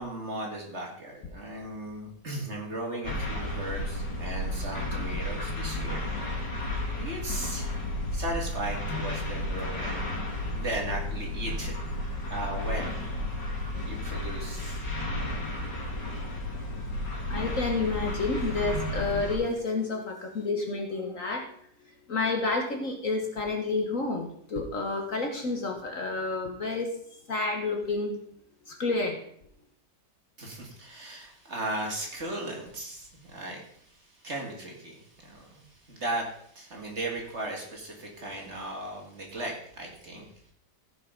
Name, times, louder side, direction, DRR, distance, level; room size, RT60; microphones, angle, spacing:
voice 1, 0.0-6.0 6.9-7.8 8.1-11.7 12.0-13.1 13.9-14.9 30.4-40.3, right 1 dB, 35° right, 0 dB, 2.6 m, -37 dB
sound 1, 3.0-19.4, left 1 dB, 70° left, 2.9 m, -33 dB
voice 2, 16.7-21.5 22.1-26.9 27.3-28.2 28.7-29.2, left 3 dB, 50° left, 3 dB, 1.4 m, -30 dB
15.0 x 5.8 x 5.1 m, 0.65 s
omnidirectional pair, 2.0 m